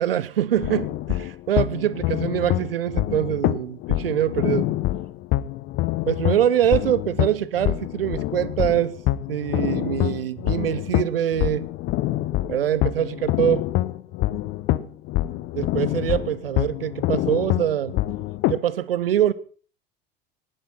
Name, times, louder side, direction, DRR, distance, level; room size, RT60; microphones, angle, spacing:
voice 1, 0.0-4.6 6.1-8.9 9.3-11.7 12.5-13.7 15.5-17.9 18.5-19.3, right 10 dB, 75° right, 0.9 m, -24 dB
sound 1, 0.6-18.6, left 16 dB, 45° left, 1.1 m, -26 dB
19.0 x 11.5 x 5.8 m
figure-of-eight pair, 70°, 29 cm